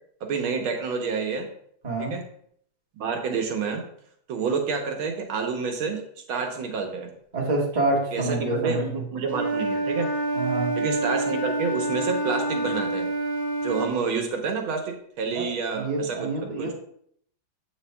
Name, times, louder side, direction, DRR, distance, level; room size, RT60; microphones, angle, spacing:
voice 1, 0.2-1.5 2.0-2.2 3.0-3.8 4.3-6.0 6.3-7.1 8.1-10.1 10.7-13.1 13.6-16.7, right 5 dB, 90° right, 3 dB, 1.7 m, -28 dB
voice 2, 7.3-8.8 10.3-10.7 15.3-15.4 15.7-16.7, right 2 dB, 20° right, -4 dB, 1.4 m, -27 dB
Wind instrument woodwind instrument, 9.3-13.9, right 2 dB, 70° right, 2.7 m, -27 dB
7.6 x 5.6 x 2.2 m, 0.65 s
omnidirectional pair, 2.2 m